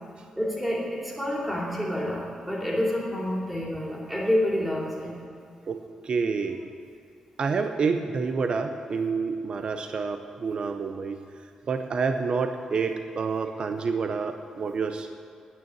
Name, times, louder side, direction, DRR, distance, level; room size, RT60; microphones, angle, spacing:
voice 1, 0.4-5.2, left 1 dB, 5° right, -3 dB, 2.7 m, -28 dB
voice 2, 5.7-6.6 7.4-11.2 11.7-15.1, right 5 dB, 45° right, 7 dB, 0.6 m, -28 dB
9.4 x 9.3 x 9.2 m, 2.5 s
wide cardioid pair, 145°, 2 cm